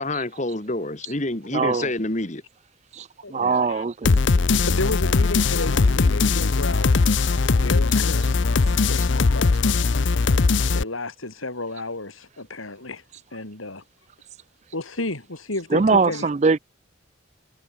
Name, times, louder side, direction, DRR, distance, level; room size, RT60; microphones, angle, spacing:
voice 1, 0.0-2.4, left 2 dB, 35° left, 2.1 m, -27 dB
voice 2, 1.5-1.9 2.9-4.2 15.7-16.6, right 4 dB, 35° right, 0.4 m, -22 dB
voice 3, 3.2-3.8 4.6-7.0 7.6-10.0 10.7-13.0 13.3-13.8 14.7-16.3, left 2 dB, 85° left, 4.3 m, -32 dB
sound 1, 4.0-10.8, left 4 dB, 65° left, 0.6 m, -20 dB
head